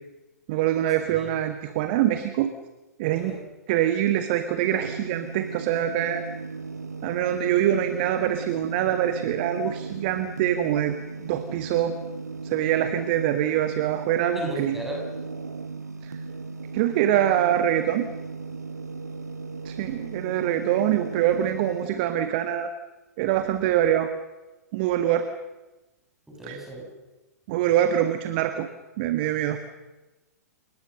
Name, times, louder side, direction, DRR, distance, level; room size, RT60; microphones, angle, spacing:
voice 1, 0.5-2.5 3.0-3.4 3.7-6.2 7.0-12.0 12.4-14.8 16.0-16.2 16.7-18.1 19.6-22.7 23.2-24.1 24.7-25.3 26.5-26.6 27.5-28.7 29.0-29.8, right 11 dB, 40° right, 9 dB, 1.6 m, -24 dB
voice 2, 3.1-3.4 14.3-15.1 26.3-26.9, right 1 dB, 5° right, -1 dB, 7.6 m, -36 dB
sound 1, 4.6-21.9, right 4 dB, 75° right, 1.3 m, -37 dB
29.5 x 19.5 x 6.7 m, 1.1 s
figure-of-eight pair, 110°, 9 cm